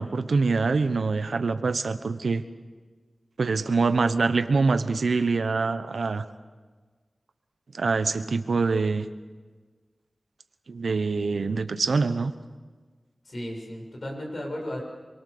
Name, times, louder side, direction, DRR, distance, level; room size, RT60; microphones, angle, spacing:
voice 1, 0.0-2.4 3.4-6.2 7.7-9.1 10.7-12.3, right 4 dB, 90° right, 10 dB, 1.2 m, -24 dB
voice 2, 13.2-14.8, left 1 dB, 60° left, 0 dB, 7.5 m, -34 dB
28.0 x 22.5 x 6.9 m, 1.4 s
wide cardioid pair, 65°, 0 cm